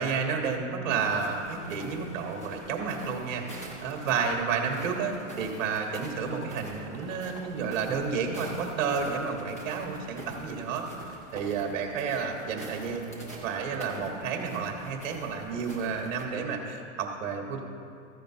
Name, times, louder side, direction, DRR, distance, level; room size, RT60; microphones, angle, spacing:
voice 1, 0.0-13.1 13.4-17.6, right 5 dB, 35° right, 2 dB, 1.5 m, -31 dB
sound 1, 1.1-16.2, right 2 dB, 15° left, 0.3 m, -45 dB
14.0 x 10.0 x 2.9 m, 2.5 s
hypercardioid pair, 165°, 39 cm